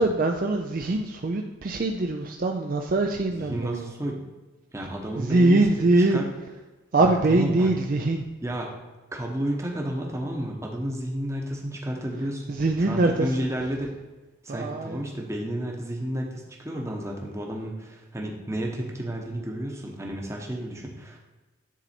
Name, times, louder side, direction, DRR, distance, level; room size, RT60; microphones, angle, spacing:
voice 1, 0.0-3.9 5.2-6.3 6.9-8.2 12.5-13.3 14.5-15.0, right 2 dB, 45° right, 3 dB, 0.4 m, -23 dB
voice 2, 3.3-4.2 4.7-5.6 6.1-6.3 7.0-7.7 8.4-8.7 9.1-12.6 12.9-13.9 14.4-21.2, right 1 dB, 15° right, 0 dB, 0.9 m, -31 dB
10.0 x 4.1 x 4.3 m, 1.2 s
head